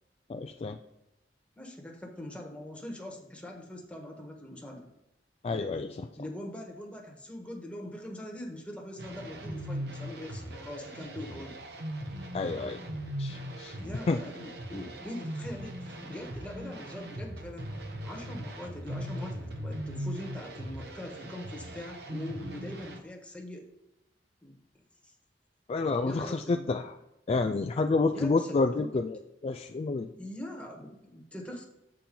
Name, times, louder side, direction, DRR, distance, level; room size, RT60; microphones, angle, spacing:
voice 1, 0.3-0.8 5.4-6.1 12.3-12.8 13.2-13.8 14.1-14.2 25.7-27.0 27.3-30.1, left 3 dB, 35° left, 6 dB, 0.3 m, -29 dB
voice 2, 1.6-4.9 6.2-11.6 13.8-17.7 18.0-23.6 24.4-24.6 25.0-25.1 26.0-26.7 28.1-28.9 30.1-31.6, left 1 dB, 5° left, 0 dB, 1.4 m, -42 dB
sound 1, 9.0-23.0, right 1 dB, 65° right, 1.1 m, -39 dB
7.6 x 4.3 x 5.3 m, 0.91 s
head